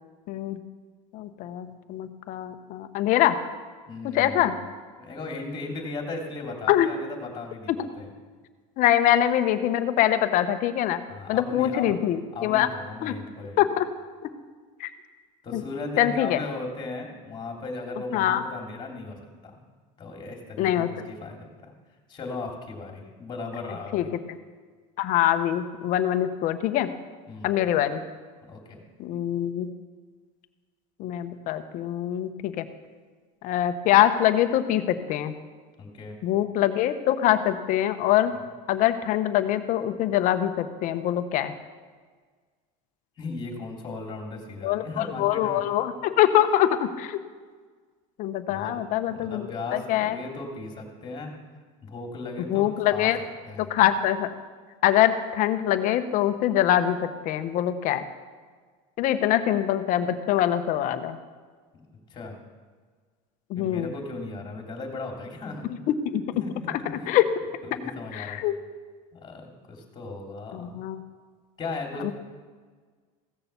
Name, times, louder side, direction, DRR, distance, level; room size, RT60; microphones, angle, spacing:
voice 1, 0.3-0.6 1.1-3.3 4.0-4.5 6.7-6.9 8.8-11.0 11.3-12.7 13.0-13.1 13.6-13.9 14.8-14.9 15.5-15.6 16.0-16.4 18.1-18.4 20.6-20.9 23.9-24.4 25.0-26.9 27.4-28.0 29.0-29.7 31.0-32.7 33.4-35.3 36.2-38.3 38.7-41.5 44.6-47.2 48.2-50.2 52.5-53.2 53.6-54.3 54.8-58.0 59.0-61.2 63.5-63.9 66.0-66.2 67.1-67.3 68.1-68.5 70.5-71.0 72.0-72.1, left 12 dB, 50° left, 10 dB, 1.0 m, -24 dB
voice 2, 3.9-4.6 5.0-8.1 11.1-11.9 12.3-13.6 15.4-19.2 19.4-19.6 20.0-21.5 22.1-24.1 27.3-27.5 28.5-28.8 35.8-36.2 43.2-45.6 48.5-48.8 49.1-51.3 51.8-53.1 53.5-53.7 62.1-62.4 63.6-65.7 66.4-67.2 67.6-68.4 69.1-70.7 71.6-72.1, left 3 dB, 25° left, 2 dB, 3.0 m, -37 dB
16.0 x 6.9 x 6.9 m, 1.5 s
supercardioid pair, 125°, 17 cm